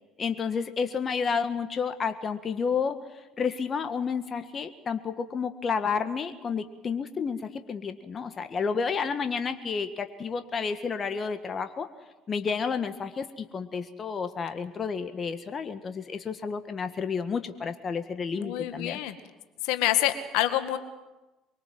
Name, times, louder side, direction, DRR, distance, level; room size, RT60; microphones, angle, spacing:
voice 1, 0.2-11.9 12.3-19.0, left 5 dB, 40° left, 9 dB, 1.7 m, -31 dB
voice 2, 18.4-19.2 19.6-20.8, left 14 dB, 70° left, 9 dB, 2.1 m, -27 dB
24.0 x 24.0 x 7.8 m, 1.1 s
hypercardioid pair, 60°, 0 cm